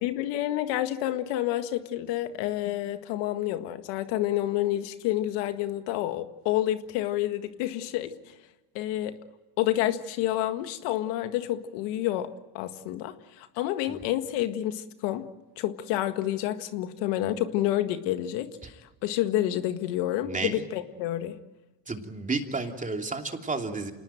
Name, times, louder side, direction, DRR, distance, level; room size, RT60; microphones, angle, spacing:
voice 1, 0.0-8.3 8.7-9.2 9.6-15.2 15.6-21.4, left 13 dB, 85° left, 1.8 m, -29 dB
voice 2, 20.2-20.6 21.9-23.9, right 3 dB, 20° right, 3.0 m, -31 dB
27.5 x 19.5 x 9.1 m
cardioid pair, 115°, 41 cm